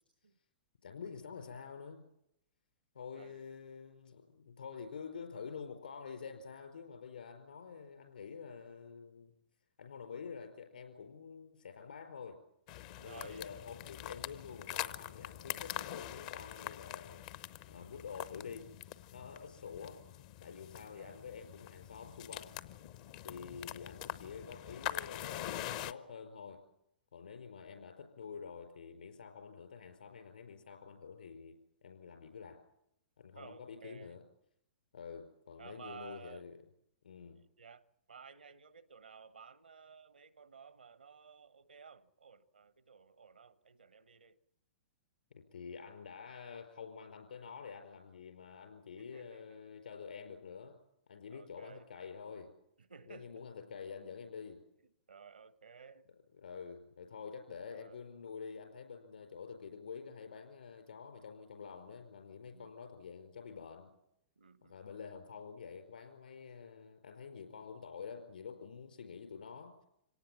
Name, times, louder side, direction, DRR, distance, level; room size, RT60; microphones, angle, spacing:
voice 1, 0.8-2.1 2.9-9.3 9.8-12.4 13.0-17.2 17.7-18.7 19.1-20.0 20.4-22.6 23.2-26.6 27.1-32.6 33.2-34.2 34.9-36.6 37.0-37.4 45.3-50.8 51.1-52.5 53.1-54.6 56.4-63.9 64.6-69.7, left 6 dB, 70° left, 4.7 m, -48 dB
voice 2, 3.1-3.5 13.0-13.6 20.7-21.2 33.3-34.2 35.6-36.5 37.6-44.4 49.0-49.5 51.3-51.9 52.8-53.4 55.1-56.1 57.7-58.0 62.5-62.7 64.4-64.8, right 6 dB, 80° right, 1.1 m, -55 dB
sound 1, 12.7-25.9, left 13 dB, 45° left, 0.8 m, -44 dB
25.5 x 18.0 x 7.4 m
figure-of-eight pair, 110°, 5 cm